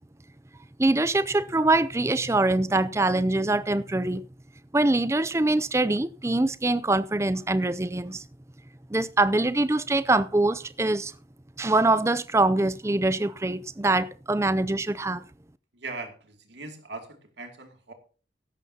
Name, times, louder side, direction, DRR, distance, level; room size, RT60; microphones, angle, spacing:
voice 1, 0.8-4.3 4.7-8.2 8.9-11.1 11.6-15.2, right 2 dB, 15° right, 0.5 m, -24 dB
voice 2, 15.7-17.9, right 3 dB, 80° right, 2.5 m, -40 dB
15.5 x 12.5 x 2.9 m
head